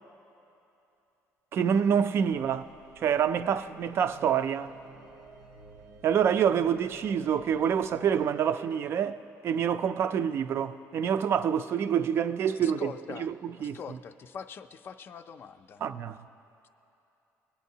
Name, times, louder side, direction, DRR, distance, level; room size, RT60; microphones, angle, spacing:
voice 1, 1.5-2.6 3.0-4.7 6.0-9.2 9.4-12.9 13.2-13.3 13.6-13.8 15.8-16.2, right 8 dB, 45° right, 0.4 m, -26 dB
sound 1, 2.3-8.3, right 4 dB, 85° right, 0.8 m, -53 dB
voice 2, 12.5-13.3 13.6-15.8, left 6 dB, 40° left, 0.4 m, -43 dB
20.5 x 8.4 x 2.8 m
cardioid pair, 135°, 6 cm